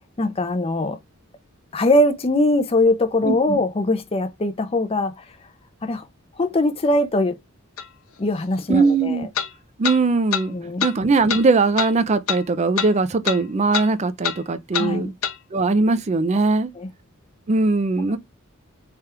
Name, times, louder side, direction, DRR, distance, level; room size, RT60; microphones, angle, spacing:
voice 1, 0.2-1.0 1.7-5.1 5.8-6.0 6.4-7.4 8.2-9.3 10.5-10.9 14.7-15.1 16.8-16.9, left 1 dB, 25° left, 0.5 m, -21 dB
voice 2, 3.2-3.6 8.7-9.3 9.8-10.6 10.8-15.1 15.5-16.7 17.5-18.2, right 3 dB, 30° right, 0.4 m, -20 dB
sound 1, 7.8-7.9 9.3-9.5 9.8-10.0 10.3-10.4 10.8-10.9 11.3-11.4 11.8-11.9 12.3-12.4 12.8-12.9 13.2-13.4 13.7-13.9 14.2-14.4 14.7-14.9 15.2-15.4, left 8 dB, 75° left, 0.6 m, -25 dB
3.4 x 2.4 x 4.2 m
head